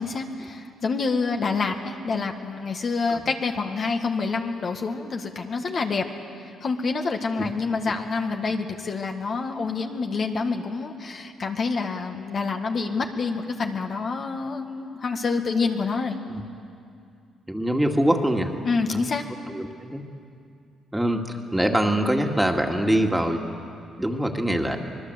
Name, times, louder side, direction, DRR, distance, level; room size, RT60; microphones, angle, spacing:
voice 1, 0.0-6.1 6.5-16.2 18.6-19.3, left 4 dB, 45° left, 4 dB, 1.7 m, -27 dB
voice 2, 17.5-18.5 18.9-19.1 19.5-20.0 20.9-23.4 24.0-24.8, right 1 dB, 5° right, 3 dB, 2.2 m, -24 dB
25.5 x 20.5 x 8.0 m, 2.4 s
cardioid pair, 90°, 0 cm